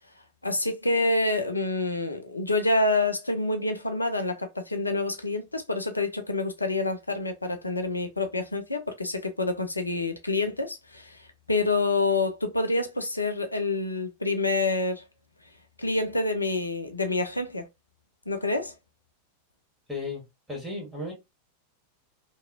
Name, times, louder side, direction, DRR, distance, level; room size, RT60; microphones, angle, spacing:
voice 1, 0.4-15.0 15.8-17.7 18.3-18.7, left 2 dB, 80° left, 0.4 m, -27 dB
voice 2, 19.9-20.2 20.5-21.1, left 3 dB, 5° right, 1.5 m, -34 dB
2.8 x 2.3 x 2.5 m
figure-of-eight pair, 90°, 0 cm